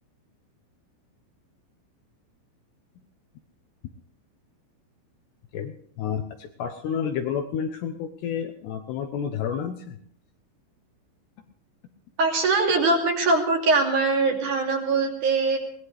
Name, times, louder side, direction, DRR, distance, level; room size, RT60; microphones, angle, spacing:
voice 1, 5.5-10.0, left 7 dB, 85° left, 6 dB, 2.4 m, -30 dB
voice 2, 12.2-15.6, right 3 dB, 45° right, 1 dB, 3.4 m, -22 dB
22.5 x 19.5 x 3.3 m, 0.63 s
omnidirectional pair, 6.0 m